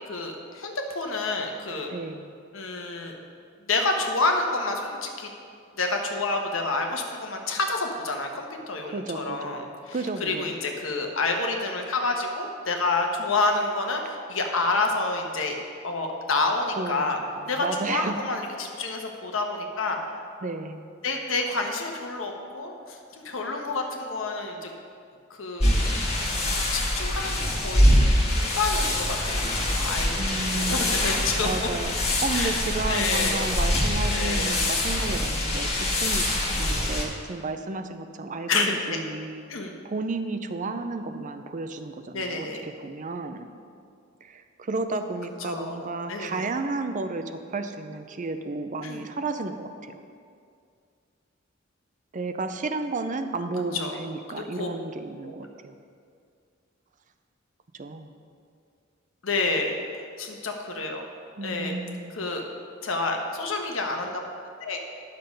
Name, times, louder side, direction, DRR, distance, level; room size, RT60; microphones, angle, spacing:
voice 1, 0.0-1.9 2.5-3.2 3.7-5.3 5.8-15.6 15.8-17.2 17.5-20.0 21.0-24.7 25.3-25.8 26.7-27.9 28.3-31.5 32.3-32.6 32.9-33.4 34.1-34.6 38.5-39.0 39.5-39.7 42.1-42.6 45.4-46.4 48.8-49.1 53.7-53.9 54.3-54.7 55.2-55.3 59.2-61.0 61.4-61.7 62.1-62.4 62.8-64.2 64.6-64.8, left 3 dB, 80° left, 3 dB, 1.2 m, -29 dB
voice 2, 1.9-2.3 8.8-10.5 16.8-17.0 17.6-18.2 20.4-20.8 30.2-30.9 31.4-31.9 32.2-39.4 39.8-43.5 44.2-50.0 52.1-55.8 57.8-58.1 61.4-62.2, right 3 dB, 40° right, 8 dB, 0.5 m, -32 dB
sound 1, 25.6-37.0, left 1 dB, 35° left, 1.6 m, -24 dB
10.5 x 6.7 x 5.3 m, 2.3 s
head